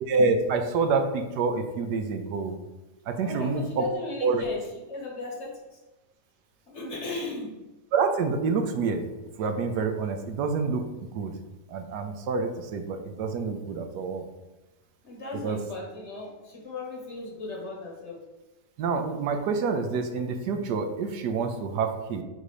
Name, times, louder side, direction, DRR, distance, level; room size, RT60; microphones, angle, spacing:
voice 1, 0.0-2.5 3.1-3.8 4.2-4.4 6.8-6.9 7.9-9.0 9.4-10.8 11.1-11.3 11.7-14.2 15.4-15.6 18.8-22.2, right 4 dB, 75° right, 6 dB, 1.2 m, -27 dB
voice 2, 3.2-4.6 4.9-5.5 6.7-7.6 15.0-18.2, left 2 dB, 45° left, -1 dB, 1.4 m, -36 dB
5.1 x 4.2 x 4.8 m, 1.1 s
omnidirectional pair, 1.8 m